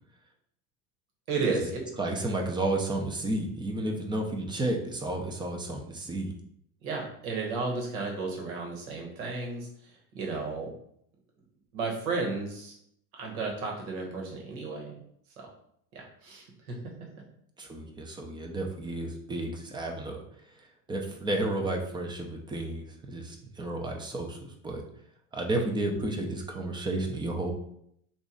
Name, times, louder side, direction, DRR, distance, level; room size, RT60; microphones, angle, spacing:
voice 1, 1.3-1.8 6.8-9.7 10.1-10.7 11.7-12.7 13.2-15.0 15.9-16.8, right 4 dB, 80° right, 0 dB, 1.3 m, -33 dB
voice 2, 2.0-6.3 17.6-20.2 20.9-24.4 24.6-24.8 25.3-27.5, right 2 dB, 10° right, 1 dB, 0.5 m, -32 dB
3.0 x 2.5 x 3.7 m, 0.71 s
supercardioid pair, 105°, 42 cm